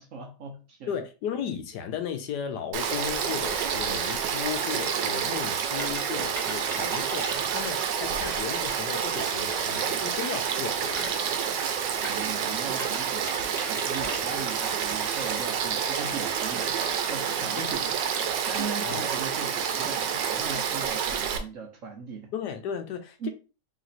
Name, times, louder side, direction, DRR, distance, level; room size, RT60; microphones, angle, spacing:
voice 1, 0.0-0.9 12.0-17.8 18.1-22.3 23.2-23.3, right 5 dB, 60° right, 0.9 m, -39 dB
voice 2, 0.9-11.2 18.8-19.0 22.3-23.3, left 8 dB, 75° left, 1.2 m, -35 dB
Frog / Stream, 2.7-21.4, right 7 dB, 85° right, 1.3 m, -28 dB
sound 1, 2.8-17.0, equal, ahead, 0.5 m, -45 dB
3.2 x 3.0 x 4.0 m
omnidirectional pair, 1.9 m